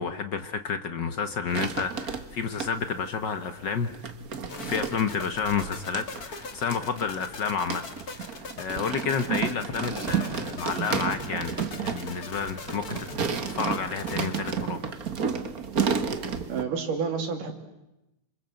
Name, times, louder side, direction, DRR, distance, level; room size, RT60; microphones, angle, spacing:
voice 1, 0.0-3.9 4.7-7.8 8.1-11.5 11.8-13.2 13.5-14.9 15.2-15.3, left 6 dB, 65° left, 9 dB, 1.1 m, -30 dB
sound 1, 1.5-3.0 3.7-16.6, right 6 dB, 45° right, 1.2 m, -32 dB
sound 2, 4.5-14.6, left 4 dB, 35° left, 1.9 m, -41 dB
voice 2, 16.5-17.5, right 5 dB, 80° right, 4 dB, 4.3 m, -29 dB
27.0 x 26.5 x 7.8 m, 0.93 s
omnidirectional pair, 3.7 m